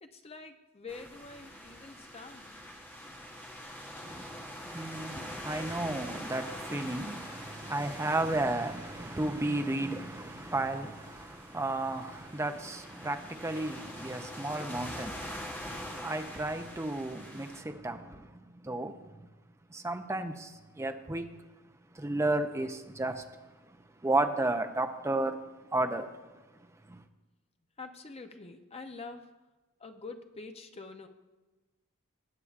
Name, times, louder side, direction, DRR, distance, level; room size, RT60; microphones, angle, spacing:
voice 1, 0.0-2.5 27.8-29.3 29.8-31.1, left 3 dB, 25° left, 0.7 m, -46 dB
sound 1, 0.9-17.6, equal, 10° left, 1.0 m, -44 dB
voice 2, 4.0-19.3 19.7-21.4 21.9-23.2 24.0-25.4 25.7-26.1 26.9-27.0, right 2 dB, 15° right, 0.5 m, -33 dB
19.5 x 8.4 x 2.5 m
head